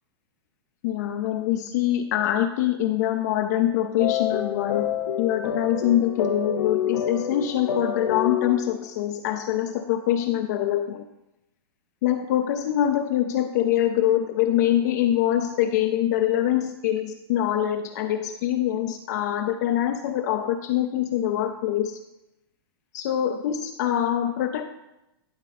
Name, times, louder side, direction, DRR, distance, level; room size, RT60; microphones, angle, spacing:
voice 1, 0.8-11.0 12.0-22.0 22.9-24.7, left 11 dB, 40° left, 6 dB, 0.5 m, -24 dB
sound 1, 4.0-8.8, left 8 dB, 70° left, 0.7 m, -28 dB
11.0 x 3.8 x 4.1 m, 0.89 s
hypercardioid pair, 165°, 14 cm